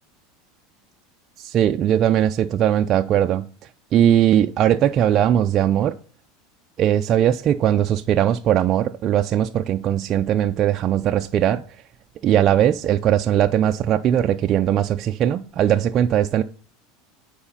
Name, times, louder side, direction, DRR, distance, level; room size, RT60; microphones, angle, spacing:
voice 1, 1.4-3.5 3.9-6.0 6.8-11.6 12.2-16.4, right 10 dB, 40° right, 0.4 m, -19 dB
8.8 x 4.9 x 5.5 m
supercardioid pair, 130°, 0 cm